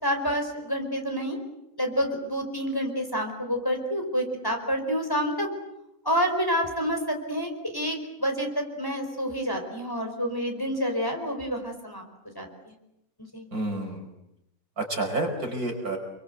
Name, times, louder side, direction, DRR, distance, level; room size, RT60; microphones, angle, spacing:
voice 1, 0.0-1.4 1.8-5.5 6.0-12.0 12.3-12.7 13.3-13.5, equal, 15° left, 3 dB, 4.7 m, -28 dB
voice 2, 13.5-14.0 14.8-16.0, right 2 dB, 75° right, 2 dB, 5.8 m, -29 dB
29.0 x 23.5 x 8.1 m, 0.85 s
omnidirectional pair, 1.6 m